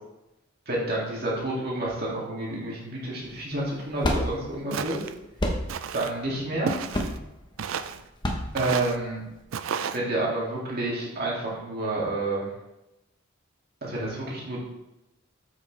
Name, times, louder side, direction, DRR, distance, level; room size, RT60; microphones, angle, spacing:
voice 1, 0.7-5.0 5.9-6.7 8.5-9.2 9.9-12.5 13.8-14.6, right 2 dB, 45° right, -5 dB, 2.4 m, -29 dB
sound 1, 3.2-9.4, equal, 20° left, 0.9 m, -31 dB
Walk footsteps, 4.7-5.1 5.7-6.1 6.7-7.2 7.6-8.0 8.6-9.0 9.5-10.0, right 7 dB, 75° right, 0.4 m, -32 dB
7.9 x 6.3 x 3.3 m, 0.93 s
head